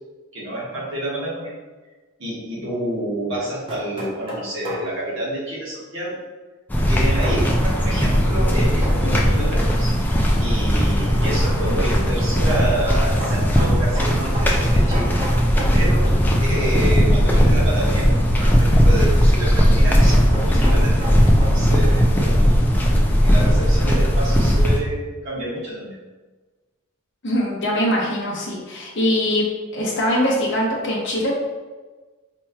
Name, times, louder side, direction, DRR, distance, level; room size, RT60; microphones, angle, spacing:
voice 1, 0.3-1.5 2.2-6.2 6.9-10.0 10.4-15.1 15.7-16.1 16.4-22.5 22.9-26.0, right 1 dB, 60° right, -7 dB, 1.4 m, -29 dB
sound 1, 3.4-4.9 7.2-7.5 8.8-9.1 10.4-16.3 16.6-16.8 18.9-22.1, right 1 dB, 25° right, 0.7 m, -33 dB
sound 2, 6.7-24.8, equal, 10° left, 0.3 m, -17 dB
voice 2, 27.2-29.4 29.7-31.3, equal, 55° left, -4 dB, 0.7 m, -22 dB
4.3 x 2.9 x 2.3 m, 1.3 s
head